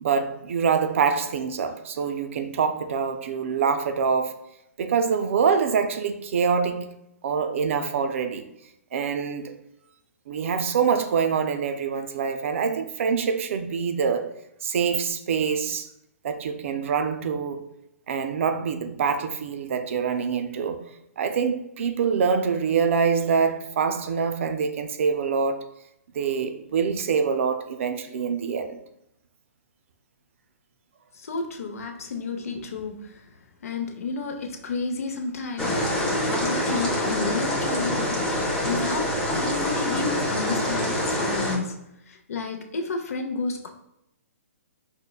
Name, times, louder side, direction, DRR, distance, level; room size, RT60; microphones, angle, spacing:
voice 1, 0.0-4.4 4.8-7.0 7.2-8.5 8.9-9.5 10.3-14.3 14.6-15.9 16.2-17.6 18.1-20.9 21.2-25.7 26.1-28.8, right 6 dB, 55° right, 0.4 m, -25 dB
voice 2, 31.1-33.3 33.6-38.2 38.6-43.7, left 4 dB, 70° left, 0.6 m, -31 dB
sound 1, 35.6-41.6, left 1 dB, 10° left, 0.6 m, -25 dB
5.1 x 2.1 x 2.3 m
hypercardioid pair, 145°, 8 cm